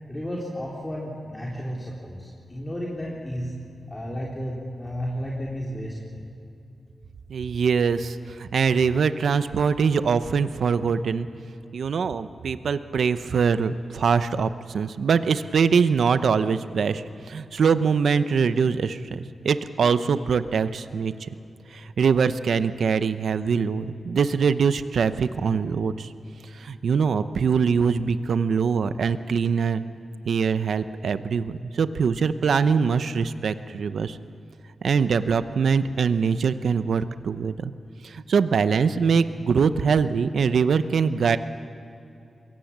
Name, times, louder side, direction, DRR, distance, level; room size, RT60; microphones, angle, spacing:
voice 1, 0.1-3.5 3.9-6.2, equal, 20° left, -4 dB, 3.7 m, -32 dB
voice 2, 7.3-11.3 11.7-21.3 21.7-26.1 26.5-29.8 30.3-34.2 34.8-37.7 38.0-41.4, right 6 dB, 75° right, 12 dB, 0.7 m, -23 dB
23.0 x 17.0 x 7.4 m, 2.7 s
cardioid pair, 65°, 0 cm